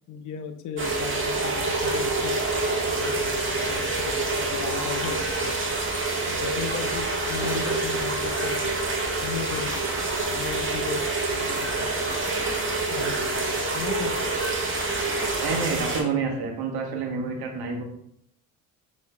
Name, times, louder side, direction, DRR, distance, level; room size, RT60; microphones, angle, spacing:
voice 1, 0.1-2.4 2.8-5.5 6.3-8.7 9.2-9.9 10.2-12.2 12.9-14.3, left 7 dB, 50° left, 8 dB, 0.5 m, -36 dB
sound 1, 0.8-16.0, right 2 dB, 30° right, 1.3 m, -27 dB
sound 2, 7.2-7.9 9.5-10.2 11.7-13.4 14.7-16.1, right 2 dB, 10° right, 0.5 m, -39 dB
voice 2, 15.4-17.8, right 4 dB, 65° right, 2 dB, 1.1 m, -28 dB
6.5 x 3.1 x 2.2 m, 0.72 s
hypercardioid pair, 60°, 40 cm